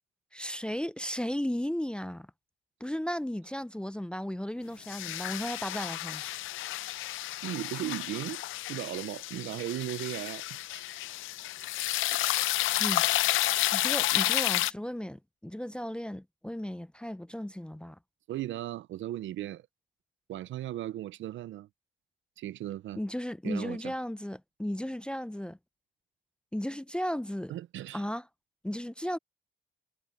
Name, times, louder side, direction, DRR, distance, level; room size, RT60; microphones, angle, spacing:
voice 1, 0.3-2.3 2.8-6.2 12.8-13.1 13.7-18.0 23.0-25.6 26.5-27.5 27.9-28.2 28.6-29.2, equal, 5° left, 0.4 m, -35 dB
sound 1, 4.9-14.7, left 16 dB, 85° left, 0.6 m, -31 dB
voice 2, 7.4-8.4 8.7-10.8 12.0-12.3 18.3-19.7 20.3-21.7 22.4-23.0 23.4-23.9 27.5-28.0, right 13 dB, 75° right, 0.6 m, -37 dB
cardioid pair, 90°, 20 cm